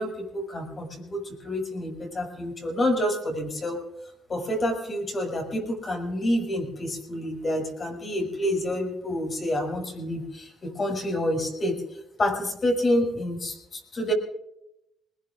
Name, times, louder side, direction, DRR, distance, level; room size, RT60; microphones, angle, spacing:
voice 1, 0.0-3.8 4.3-11.8 12.2-14.1, left 1 dB, 40° left, 1 dB, 6.4 m, -28 dB
22.0 x 21.0 x 2.5 m, 0.82 s
cardioid pair, 90°, 0 cm